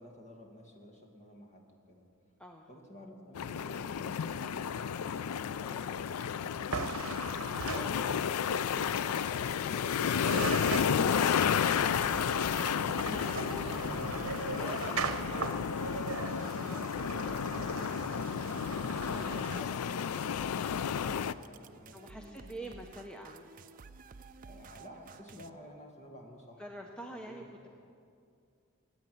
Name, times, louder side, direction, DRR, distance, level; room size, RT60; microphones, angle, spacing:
voice 1, 0.0-2.0 2.7-6.5 12.3-17.9 18.5-22.9 24.4-27.7, left 1 dB, 30° left, 1 dB, 1.9 m, -51 dB
sound 1, 3.4-21.3, left 7 dB, 80° left, 0.4 m, -32 dB
sound 2, 6.7-8.5 9.8-9.9 10.1-19.6, right 4 dB, 65° right, 0.9 m, -39 dB
voice 2, 10.9-11.9 12.1-12.4 13.1-13.6 14.6-15.1 21.9-23.5 26.6-27.4, equal, 5° left, 2 dB, 0.6 m, -45 dB
sound 3, 11.8-25.5, right 4 dB, 40° right, 0.4 m, -53 dB
16.5 x 8.5 x 9.2 m, 2.4 s
head